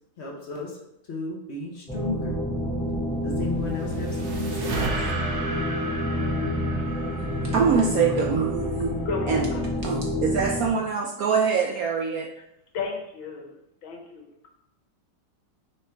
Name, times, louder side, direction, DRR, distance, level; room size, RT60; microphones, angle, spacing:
voice 1, 0.2-0.8 1.1-2.4 3.2-4.8, left 3 dB, 45° left, -1 dB, 1.0 m, -34 dB
sound 1, 1.9-10.7, left 1 dB, 5° left, 0.4 m, -28 dB
sound 2, 3.5-8.9, right 3 dB, 50° right, 0.9 m, -34 dB
voice 2, 7.5-8.9 9.3-9.5 9.8-12.3, right 6 dB, 80° right, 1 dB, 0.8 m, -24 dB
voice 3, 9.1-9.7 10.4-10.5 12.7-14.5, left 4 dB, 85° left, 2 dB, 1.9 m, -34 dB
6.0 x 4.6 x 3.4 m, 0.80 s
omnidirectional pair, 2.1 m